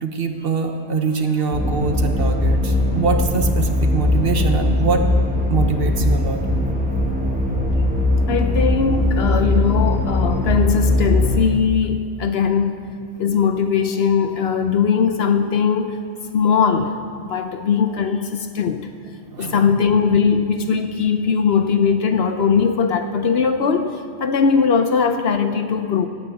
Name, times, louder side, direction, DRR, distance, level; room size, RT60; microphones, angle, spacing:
voice 1, 0.0-5.0 5.5-6.4 19.3-19.8, right 4 dB, 50° right, 5 dB, 0.9 m, -23 dB
sound 1, 1.5-11.4, left 1 dB, 5° right, 1.0 m, -20 dB
voice 2, 8.3-12.9 13.2-16.0 16.3-17.0 17.3-18.9 19.4-26.1, left 6 dB, 60° left, 8 dB, 0.8 m, -19 dB
9.8 x 8.6 x 7.7 m, 2.2 s
omnidirectional pair, 1.3 m